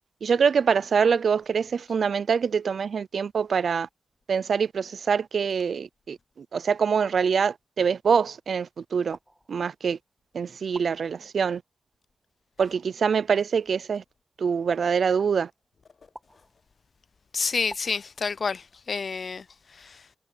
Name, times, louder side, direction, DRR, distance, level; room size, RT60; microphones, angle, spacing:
voice 1, 0.2-3.9 4.3-9.2 9.5-10.0 10.3-11.6 12.6-14.0 14.4-15.5, right 6 dB, 80° right, 0.3 m, -24 dB
sound 1, 9.1-10.0 10.7-11.6 12.6-13.4 14.7-15.6 16.1-16.9 17.7-18.7, equal, 5° right, 1.4 m, -49 dB
voice 2, 17.3-19.4 19.8-20.0, left 5 dB, 55° left, 0.4 m, -29 dB
wide cardioid pair, 140°, 0 cm